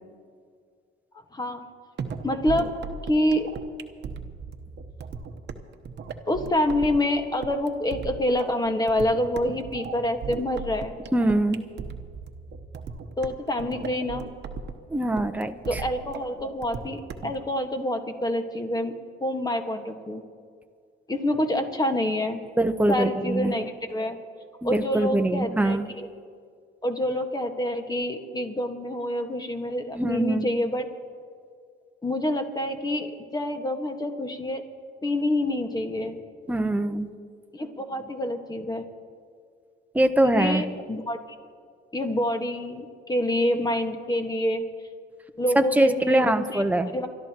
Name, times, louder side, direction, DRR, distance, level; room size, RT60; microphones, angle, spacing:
voice 1, 1.3-1.6 2.2-2.7 3.1-3.5 6.3-10.9 13.2-14.3 15.7-18.9 19.2-20.2 21.1-22.4 22.9-24.2 24.6-26.1 26.8-30.9 32.0-34.6 35.0-36.2 37.5-38.8 40.2-41.2 41.9-44.6 45.4-47.1, left 1 dB, 20° left, 5 dB, 1.6 m, -27 dB
sound 1, 2.0-17.4, right 5 dB, 60° right, 1.0 m, -37 dB
voice 2, 11.1-11.6 14.9-15.8 22.6-23.5 24.6-25.8 29.9-30.5 36.5-37.1 39.9-40.6 45.5-47.1, right 1 dB, 10° right, 7 dB, 0.9 m, -23 dB
29.0 x 13.0 x 3.0 m, 2.1 s
cardioid pair, 90°, 20 cm